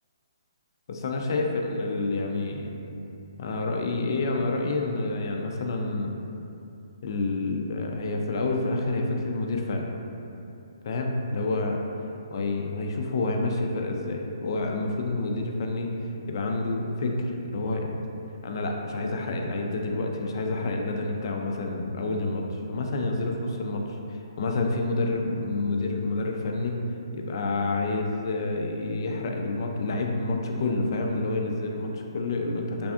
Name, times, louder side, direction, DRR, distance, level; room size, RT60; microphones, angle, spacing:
voice 1, 0.9-2.7 3.4-6.2 7.0-9.9 10.8-11.8 12.3-15.9 16.3-17.9 18.4-23.8 24.1-26.8 27.1-32.9, left 2 dB, 55° left, 2 dB, 0.3 m, -28 dB
3.3 x 2.5 x 2.3 m, 2.7 s
hypercardioid pair, 145°, 3 cm